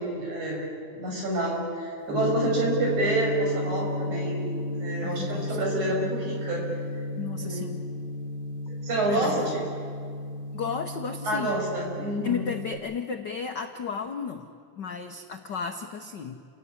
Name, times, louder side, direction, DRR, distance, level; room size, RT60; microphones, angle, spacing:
voice 1, 0.0-6.6 7.4-7.7 8.8-9.6 11.3-12.5, right 2 dB, 70° right, -1 dB, 7.4 m, -28 dB
Gong, 2.1-12.7, left 1 dB, 50° right, 5.1 m, -33 dB
voice 2, 5.0-5.6 7.2-7.8 9.1-9.6 10.5-11.5 12.2-14.5 14.8-16.4, left 6 dB, 75° left, 5 dB, 1.0 m, -33 dB
29.5 x 17.0 x 9.7 m, 2.3 s
omnidirectional pair, 3.5 m